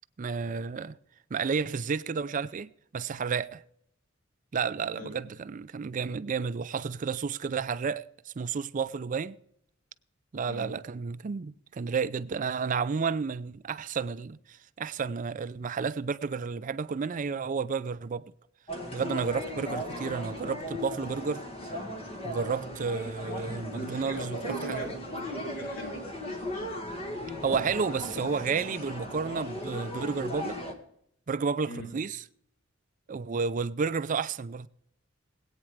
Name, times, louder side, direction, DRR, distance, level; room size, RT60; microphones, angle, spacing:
voice 1, 0.2-1.0 1.3-3.6 4.5-9.4 10.3-18.3 18.9-21.4 22.2-24.8 27.4-30.6 31.3-32.2 33.1-34.7, right 5 dB, 40° right, 0.4 m, -31 dB
voice 2, 10.5-10.8 23.7-26.7 31.7-31.9, right 1 dB, 80° left, 3.3 m, -40 dB
sound 1, 18.7-30.7, left 1 dB, 30° left, 1.7 m, -37 dB
22.0 x 8.8 x 3.3 m
head